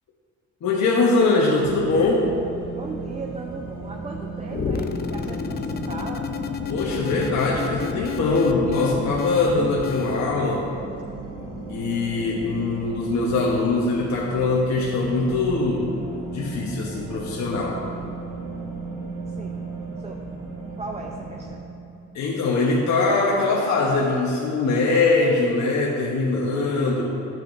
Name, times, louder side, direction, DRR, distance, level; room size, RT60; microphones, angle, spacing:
voice 1, 0.6-2.3 6.7-10.7 11.7-16.0 16.2-17.8 22.1-27.0, left 3 dB, 65° left, -3 dB, 1.0 m, -22 dB
sound 1, 1.6-21.6, right 3 dB, 85° right, 1.8 m, -36 dB
voice 2, 2.7-6.3 19.3-19.6 20.0-20.2 20.8-21.6, right 3 dB, 20° right, 1 dB, 0.6 m, -37 dB
sound 2, 4.5-10.3, left 5 dB, 35° left, 0.5 m, -30 dB
11.5 x 7.6 x 2.6 m, 2.8 s
cardioid pair, 90°, 30 cm